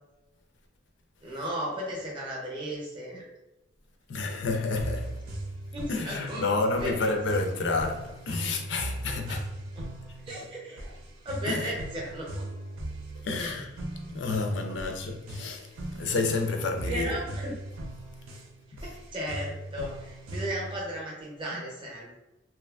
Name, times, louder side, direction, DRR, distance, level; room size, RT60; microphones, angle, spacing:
voice 1, 1.2-3.2 5.7-6.5 6.7-7.1 9.1-9.4 9.8-9.9 10.2-10.9 11.2-12.5 13.4-13.5 14.7-14.8 16.9-17.6 19.1-22.2, right 1 dB, 25° right, 0.6 m, -35 dB
voice 2, 4.1-5.3 5.9-9.4 11.5-11.7 13.2-13.7 14.1-17.2 18.7-18.8 21.5-21.6, left 3 dB, 65° left, 0.4 m, -30 dB
sound 1, 4.8-20.8, right 1 dB, 90° right, 0.5 m, -39 dB
2.8 x 2.3 x 2.3 m
head